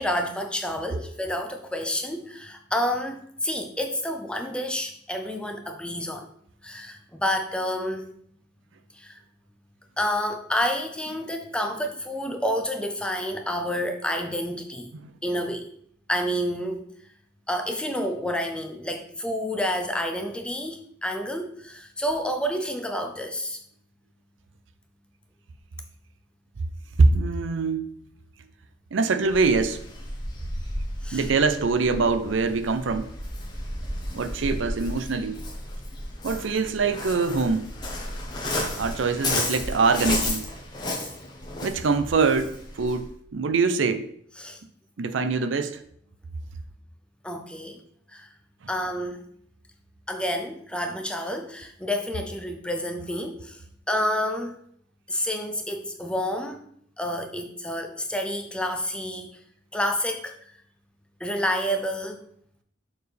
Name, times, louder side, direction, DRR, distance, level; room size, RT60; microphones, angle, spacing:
voice 1, 0.0-6.3 6.6-8.1 8.9-9.2 10.0-14.9 15.2-15.7 16.1-16.9 17.5-23.6 31.0-31.3 44.4-44.6 47.2-47.8 48.1-48.3 48.7-49.2 50.1-53.6 53.9-54.6 55.1-56.7 57.0-59.3 59.7-60.3 61.2-62.2, equal, 5° left, 0.5 m, -29 dB
voice 2, 27.0-28.0 28.9-29.8 31.1-33.1 34.1-35.5 36.2-37.7 38.8-40.5 41.6-44.1 45.0-45.8, right 4 dB, 75° right, 0.5 m, -24 dB
Waves surf, 29.2-43.1, left 1 dB, 20° left, 1.2 m, -33 dB
6.7 x 4.4 x 3.3 m
head